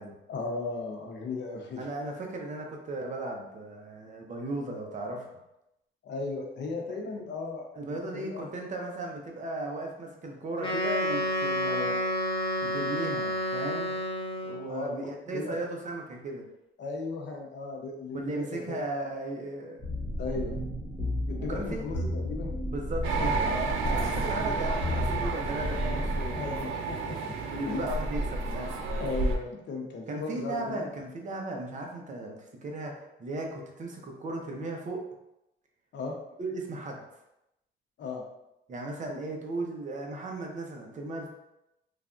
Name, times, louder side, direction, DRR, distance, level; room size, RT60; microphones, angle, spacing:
voice 1, 0.3-1.8 6.0-8.5 11.6-11.9 14.7-15.6 16.8-18.8 20.2-20.6 21.2-22.5 23.2-23.3 26.4-27.4 27.7-27.9 29.0-30.9 35.9-36.1 38.0-38.2, left 3 dB, 65° left, 1 dB, 0.7 m, -36 dB
voice 2, 1.8-5.3 7.8-12.0 12.6-13.9 14.4-16.4 18.1-19.8 21.4-21.8 22.7-26.5 27.5-28.8 30.1-35.1 36.4-37.0 38.7-41.3, right 2 dB, 40° right, 1 dB, 0.6 m, -36 dB
Wind instrument woodwind instrument, 10.6-14.7, equal, 25° left, 0.6 m, -30 dB
sound 1, 19.8-26.6, left 1 dB, 5° left, 1.1 m, -33 dB
sound 2, 23.0-29.4, right 3 dB, 90° right, 0.4 m, -31 dB
3.3 x 2.3 x 2.5 m, 0.87 s
cardioid pair, 90°, 20 cm